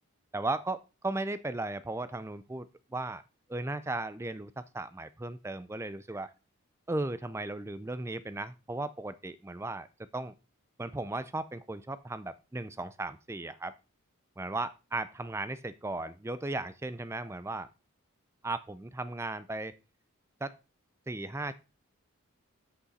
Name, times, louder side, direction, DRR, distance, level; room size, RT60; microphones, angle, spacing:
voice 1, 0.3-3.2 3.5-6.3 6.9-9.9 10.1-10.3 10.8-13.7 14.4-17.7 18.4-19.8 20.4-20.6 21.1-21.5, right 2 dB, 10° right, 14 dB, 0.4 m, -36 dB
8.5 x 8.0 x 4.1 m, 0.29 s
head